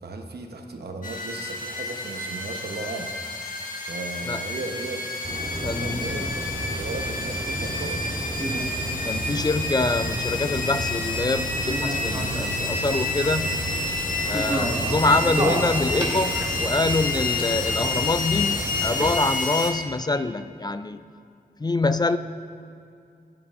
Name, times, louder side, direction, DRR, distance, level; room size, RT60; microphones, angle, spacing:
voice 1, 0.0-3.1 3.9-5.0 5.6-8.0, right 3 dB, 80° right, 4 dB, 0.9 m, -36 dB
sound 1, 1.0-19.7, left 2 dB, 55° left, 1.2 m, -29 dB
sound 2, 5.2-19.1, right 1 dB, 25° right, 1.6 m, -31 dB
voice 2, 5.6-6.3 9.1-13.7 14.2-21.0 21.6-22.2, left 3 dB, 25° left, 11 dB, 0.3 m, -25 dB
13.5 x 9.7 x 2.5 m, 2.4 s
cardioid pair, 60°, 17 cm